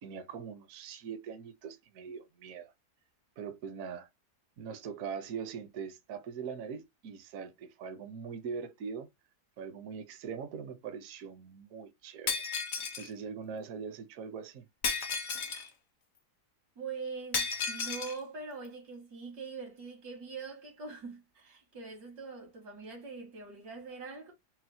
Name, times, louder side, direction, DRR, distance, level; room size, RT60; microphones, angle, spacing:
voice 1, 0.0-2.7 3.4-4.1 4.6-9.1 9.6-12.4 13.0-14.7, right 6 dB, 65° right, 0.9 m, -42 dB
Shatter, 12.3-13.1 14.8-15.7 17.3-18.2, left 5 dB, 75° left, 0.4 m, -33 dB
voice 2, 16.8-24.3, right 4 dB, 85° right, 2.2 m, -43 dB
4.2 x 2.0 x 2.6 m
omnidirectional pair, 1.7 m